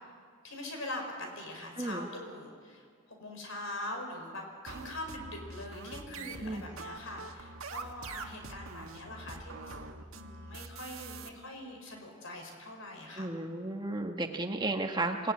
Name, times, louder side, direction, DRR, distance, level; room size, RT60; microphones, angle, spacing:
voice 1, 0.4-2.8 3.2-9.8 10.1-13.3, left 1 dB, 65° left, 3 dB, 5.6 m, -42 dB
voice 2, 1.8-2.1 6.4-6.6 13.2-15.3, right 2 dB, 20° right, 4 dB, 1.5 m, -33 dB
sound 1, 4.7-11.3, right 3 dB, 75° right, 1.8 m, -44 dB
26.5 x 18.0 x 9.7 m, 2.2 s
head